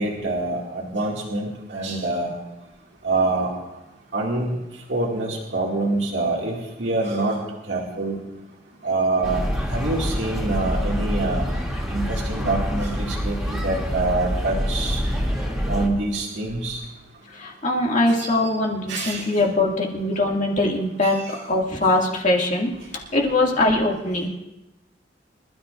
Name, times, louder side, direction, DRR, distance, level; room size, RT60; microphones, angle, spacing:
voice 1, 0.0-2.3 3.0-3.5 4.1-4.5 4.9-7.4 7.7-8.2 8.8-11.4 11.9-15.0 15.7-16.8 18.2-18.3 18.9-19.2, right 2 dB, 70° right, -3 dB, 2.3 m, -25 dB
sound 1, 9.2-15.9, equal, ahead, 2.6 m, -26 dB
voice 2, 17.3-22.7 23.1-24.3, left 2 dB, 45° left, -1 dB, 2.3 m, -22 dB
26.0 x 13.0 x 2.5 m, 0.96 s
head